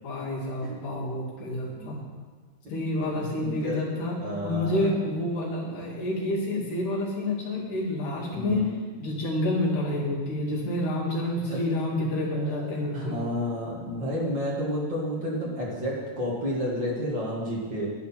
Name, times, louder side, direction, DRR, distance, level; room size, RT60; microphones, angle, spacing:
voice 1, 0.0-2.0 2.7-8.7 9.0-13.2, left 1 dB, 80° left, -5 dB, 4.0 m, -29 dB
voice 2, 3.0-3.8 4.2-4.9 8.3-8.7 11.5-11.6 12.3-17.9, equal, 40° right, -5 dB, 2.4 m, -31 dB
12.0 x 10.5 x 4.3 m, 1.5 s
omnidirectional pair, 3.5 m